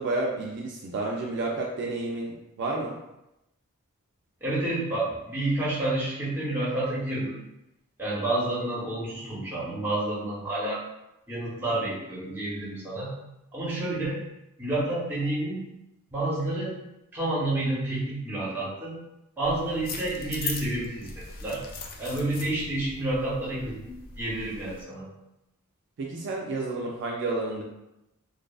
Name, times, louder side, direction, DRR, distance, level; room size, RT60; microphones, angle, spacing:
voice 1, 0.0-3.0 26.0-27.6, right 2 dB, 50° right, -2 dB, 0.3 m, -30 dB
voice 2, 4.4-7.4 8.0-10.8 11.3-13.1 13.5-14.2 14.6-15.6 16.1-16.8 17.1-19.0 19.4-21.6 22.0-25.1, right 2 dB, 10° right, -7 dB, 0.8 m, -29 dB
sound 1, 19.4-24.8, left 4 dB, 40° left, 0.3 m, -39 dB
2.6 x 2.3 x 2.3 m, 0.89 s
head